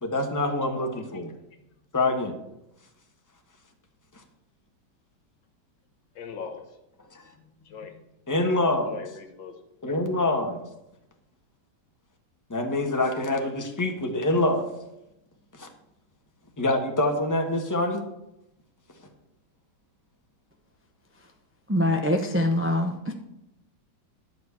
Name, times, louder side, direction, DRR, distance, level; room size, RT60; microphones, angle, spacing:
voice 1, 0.0-1.3 1.9-2.3 7.1-7.2 8.3-9.0 9.8-10.6 12.5-14.7 15.5-15.7 16.6-18.0, left 2 dB, 10° left, 3 dB, 1.2 m, -25 dB
voice 2, 0.7-1.0 6.2-6.7 7.4-8.0 8.9-9.6, left 6 dB, 80° left, 6 dB, 2.1 m, -40 dB
voice 3, 21.7-23.1, left 1 dB, 20° right, 4 dB, 0.3 m, -24 dB
11.5 x 5.1 x 8.4 m, 0.86 s
omnidirectional pair, 2.0 m